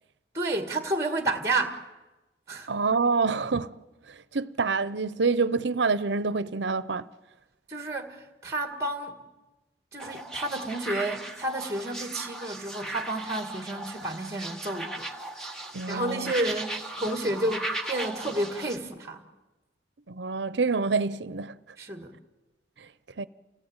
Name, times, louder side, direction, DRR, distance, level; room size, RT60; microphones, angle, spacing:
voice 1, 0.3-1.8 2.5-2.7 7.7-9.2 9.9-15.1 15.4-15.5 15.9-19.2 21.8-22.1, right 2 dB, 15° right, 1.9 m, -31 dB
voice 2, 2.7-3.8 4.1-7.1 15.7-16.3 20.1-21.6 22.8-22.9 23.2-23.3, right 4 dB, 75° right, 0.7 m, -27 dB
sound 1, 10.0-18.8, right 1 dB, 5° left, 1.5 m, -37 dB
29.0 x 17.5 x 8.9 m
head